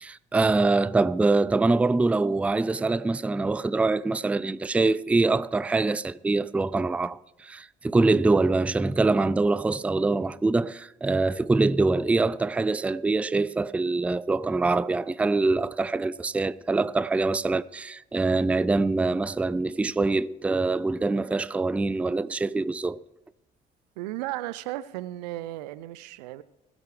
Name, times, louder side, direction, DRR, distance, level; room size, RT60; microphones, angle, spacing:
voice 1, 0.0-23.0, right 3 dB, 5° right, 0.3 m, -24 dB
voice 2, 24.0-26.4, right 16 dB, 80° right, 0.5 m, -35 dB
20.5 x 8.0 x 3.3 m
hypercardioid pair, 55°, 21 cm